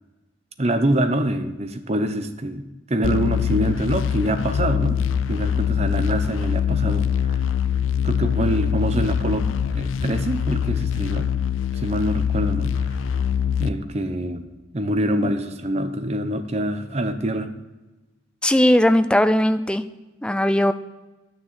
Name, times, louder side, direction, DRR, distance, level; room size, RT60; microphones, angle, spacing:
voice 1, 0.6-5.0 5.3-7.4 8.0-9.5 9.7-11.3 11.8-12.9 13.6-14.4 14.7-17.5, right 1 dB, 35° right, 8 dB, 0.8 m, -25 dB
sound 1, 3.0-13.7, left 7 dB, 85° left, 0.4 m, -23 dB
voice 2, 18.4-19.8 20.2-20.7, left 1 dB, 5° left, 11 dB, 0.4 m, -18 dB
9.7 x 6.5 x 5.9 m, 1.1 s
head